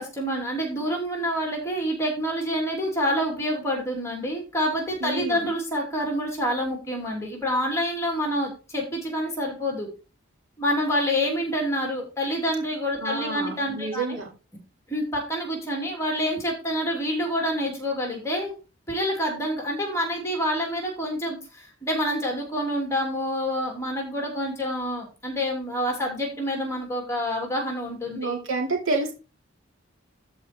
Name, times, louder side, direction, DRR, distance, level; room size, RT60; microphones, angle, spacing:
voice 1, 0.0-9.9 10.6-14.2 14.9-18.5 18.9-28.4, equal, 15° left, 1 dB, 2.9 m, -27 dB
voice 2, 5.0-5.5 13.0-14.3 28.1-29.1, right 3 dB, 75° right, 0 dB, 2.8 m, -29 dB
13.0 x 4.6 x 4.4 m, 0.32 s
head